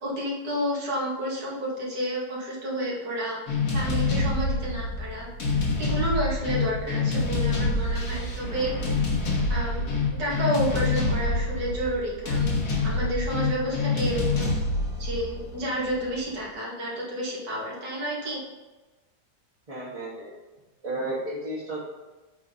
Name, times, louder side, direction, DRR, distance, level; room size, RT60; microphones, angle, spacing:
voice 1, 0.0-3.4 3.7-5.3 5.8-8.9 9.5-9.9 10.2-12.6 12.8-14.5 15.0-18.4, equal, 90° right, -5 dB, 2.7 m, -30 dB
sound 1, 3.5-16.2, left 3 dB, 65° left, 1.9 m, -27 dB
voice 2, 19.7-20.3 20.8-21.8, right 1 dB, 25° right, -8 dB, 1.3 m, -32 dB
8.2 x 3.8 x 5.4 m, 1.2 s
omnidirectional pair, 1.8 m